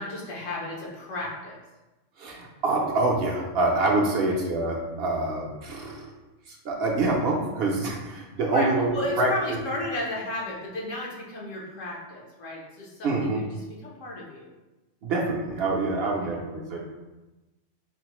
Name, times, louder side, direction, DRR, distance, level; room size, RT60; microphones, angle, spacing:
voice 1, 0.0-1.6 8.5-14.5 16.2-16.3, left 1 dB, 85° left, -3 dB, 1.2 m, -34 dB
voice 2, 2.2-6.1 6.5-8.9 9.2-9.3 13.0-13.4 15.0-16.8, right 2 dB, 60° right, -1 dB, 0.7 m, -26 dB
4.3 x 2.0 x 2.9 m, 1.1 s
omnidirectional pair, 1.3 m